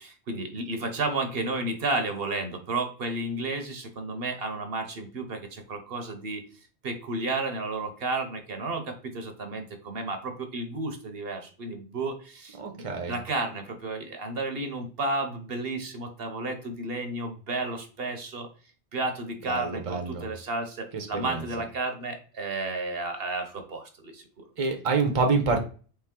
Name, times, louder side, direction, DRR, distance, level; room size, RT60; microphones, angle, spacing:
voice 1, 0.0-6.4 6.8-18.5 18.9-24.4, right 2 dB, 65° right, 6 dB, 1.0 m, -32 dB
voice 2, 12.6-13.2 19.5-20.3 20.9-21.4 24.6-25.6, right 4 dB, 35° right, 4 dB, 0.7 m, -27 dB
4.4 x 3.2 x 3.6 m, 0.38 s
omnidirectional pair, 1.1 m